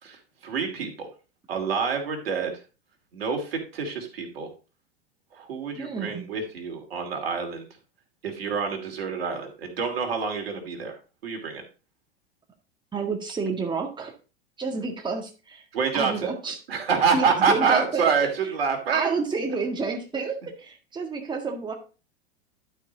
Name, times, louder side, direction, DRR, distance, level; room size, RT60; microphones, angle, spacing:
voice 1, 0.0-1.1 1.5-2.5 3.1-4.5 5.3-7.7 8.2-11.0 11.2-11.6 15.7-16.3 16.7-19.1, right 5 dB, 70° right, 3 dB, 2.6 m, -27 dB
voice 2, 5.8-6.3 12.9-14.1 14.6-15.6 15.9-16.6 17.1-18.3 18.9-21.7, right 4 dB, 15° right, 2 dB, 1.8 m, -29 dB
11.5 x 4.9 x 3.9 m, 0.33 s
hypercardioid pair, 95°, 31 cm